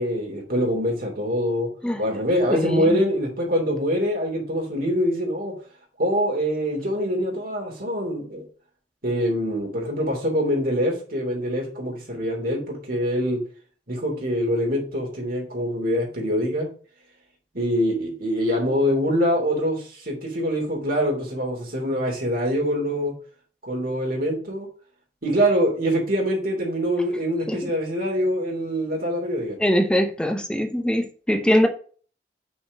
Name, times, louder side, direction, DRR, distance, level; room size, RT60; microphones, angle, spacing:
voice 1, 0.0-1.7 2.0-5.5 6.0-8.4 9.0-13.4 13.9-16.7 17.5-23.1 23.6-24.7 25.2-29.6, equal, 55° right, 0 dB, 3.0 m, -24 dB
voice 2, 2.5-3.0 27.5-27.6 29.6-31.7, equal, 5° left, 6 dB, 1.0 m, -22 dB
6.2 x 4.5 x 5.3 m, 0.41 s
head